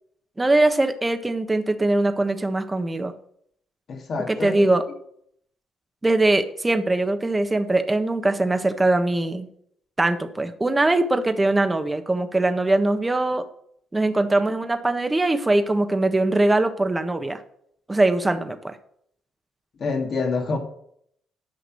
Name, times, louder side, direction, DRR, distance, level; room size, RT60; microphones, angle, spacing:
voice 1, 0.4-3.1 4.3-4.8 6.0-9.5 10.0-13.4 13.9-17.4 17.9-18.8, right 2 dB, 20° right, 1.4 m, -21 dB
voice 2, 3.9-4.7 19.8-20.6, left 4 dB, 55° left, 2.4 m, -26 dB
11.5 x 5.8 x 6.4 m
hypercardioid pair, 50°, 0 cm